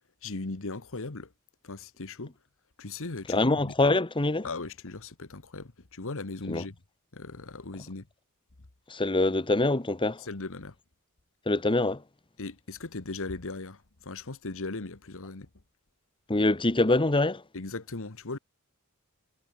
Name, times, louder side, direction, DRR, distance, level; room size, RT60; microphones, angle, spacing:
voice 1, 0.2-1.3 1.6-2.3 2.8-3.7 4.4-6.8 7.1-8.1 10.2-10.8 12.4-15.5 17.5-18.4, left 3 dB, 65° left, 1.5 m, -38 dB
voice 2, 3.3-4.4 6.5-6.6 8.9-10.2 11.5-12.0 16.3-17.4, left 2 dB, 25° left, 1.2 m, -24 dB
head